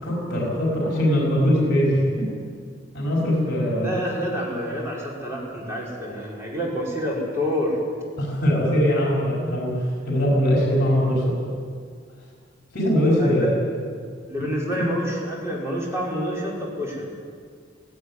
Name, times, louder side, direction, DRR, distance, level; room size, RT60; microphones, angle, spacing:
voice 1, 0.0-2.3 2.9-4.0 8.2-11.4 12.7-13.6 14.8-14.9, equal, 55° left, -3 dB, 5.4 m, -21 dB
voice 2, 3.8-7.8 13.2-13.5 14.3-17.1, equal, 15° right, -4 dB, 5.3 m, -28 dB
17.0 x 16.0 x 9.8 m, 2.1 s
head